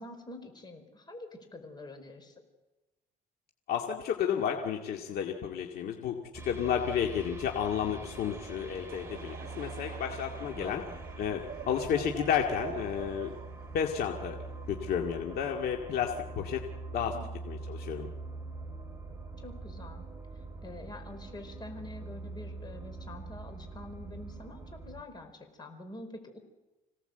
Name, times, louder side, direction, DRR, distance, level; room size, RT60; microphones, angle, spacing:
voice 1, 0.0-2.3 10.5-11.0 17.1-17.3 19.4-20.0 20.6-25.3 25.6-26.4, left 1 dB, 25° left, 6 dB, 4.7 m, -46 dB
voice 2, 3.7-6.2 6.4-10.8 11.2-11.4 11.7-13.3 13.7-14.4 14.7-16.6 16.9-17.1 17.5-18.1, left 8 dB, 65° left, 1 dB, 2.2 m, -31 dB
sound 1, 6.3-25.0, right 3 dB, 15° right, 3.5 m, -43 dB
Laughter / Crowd, 8.7-15.1, right 10 dB, 60° right, 1.3 m, -47 dB
26.5 x 17.5 x 8.0 m, 1.1 s
cardioid pair, 110°, 17 cm